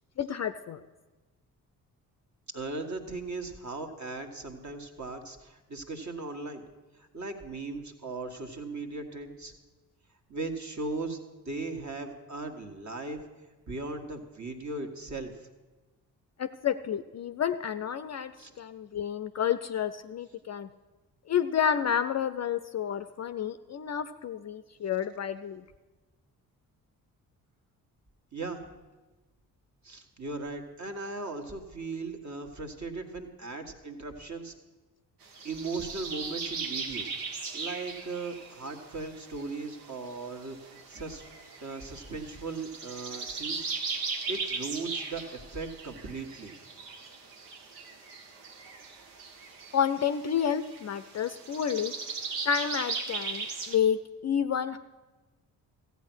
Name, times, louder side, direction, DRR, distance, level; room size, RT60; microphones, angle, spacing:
voice 1, 0.2-0.8 16.4-18.3 18.6-20.7 21.3-25.6 49.7-51.9 52.4-54.8, left 8 dB, 35° left, 11 dB, 0.5 m, -30 dB
voice 2, 2.5-6.6 6.9-9.5 10.3-11.2 11.4-13.2 13.7-15.5 18.4-18.6 28.3-28.6 29.8-34.5 35.4-37.1 37.4-41.3 41.6-43.7 44.3-46.5, right 3 dB, 40° right, 5 dB, 1.7 m, -38 dB
sound 1, 35.2-53.8, right 4 dB, 85° right, 1.0 m, -38 dB
14.5 x 8.3 x 6.2 m, 1.2 s
hypercardioid pair, 40°, 46 cm